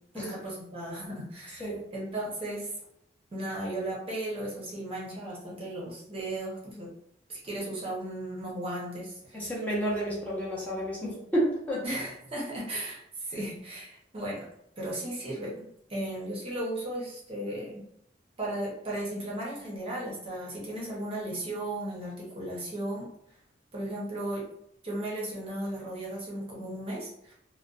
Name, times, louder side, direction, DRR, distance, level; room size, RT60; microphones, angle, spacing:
voice 1, 0.1-2.7 3.3-6.9 7.3-9.5 11.8-14.5 14.8-17.8 18.4-23.1 23.7-24.5 24.8-27.3, right 1 dB, 30° right, -5 dB, 0.7 m, -36 dB
voice 2, 9.3-11.8, equal, 10° left, -7 dB, 0.7 m, -30 dB
2.4 x 2.1 x 2.4 m, 0.75 s
head